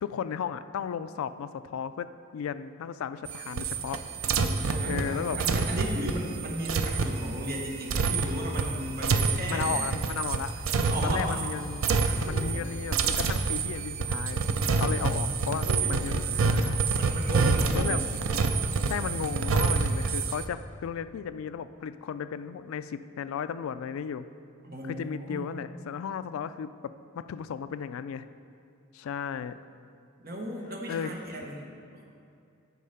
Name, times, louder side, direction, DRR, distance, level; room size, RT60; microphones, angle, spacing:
voice 1, 0.0-2.1 2.3-4.0 4.9-5.4 9.5-10.7 11.0-11.8 12.2-14.4 14.7-16.7 17.7-18.0 18.9-24.2 24.9-28.3 28.9-29.6 30.9-31.1, left 7 dB, 75° left, 14 dB, 0.3 m, -34 dB
sound 1, 3.3-11.5 11.8-12.6 12.9-20.4, right 4 dB, 70° right, 0.5 m, -27 dB
voice 2, 4.4-9.9 10.9-11.4 12.1-12.6 15.6-16.2 17.0-18.1 24.6-25.5 30.2-32.0, equal, 45° right, 0 dB, 1.1 m, -35 dB
8.4 x 4.6 x 5.6 m, 2.5 s
head